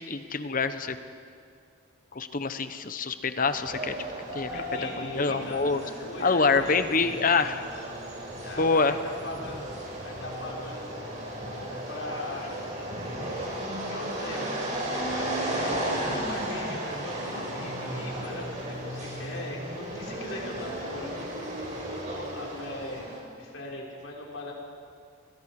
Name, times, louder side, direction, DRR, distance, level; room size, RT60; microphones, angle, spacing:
voice 1, 0.1-1.0 2.1-4.0 4.3-5.8 6.2-7.6 8.6-8.9, left 4 dB, 45° left, 10 dB, 1.1 m, -26 dB
sound 1, 3.5-23.2, right 1 dB, 40° right, 5.8 m, -35 dB
voice 2, 4.5-7.4 8.4-9.6 10.0-11.3 11.9-12.6 13.8-21.3 21.9-23.1 23.4-24.5, left 2 dB, 80° left, -2 dB, 5.3 m, -40 dB
30.0 x 22.5 x 5.0 m, 2.4 s
head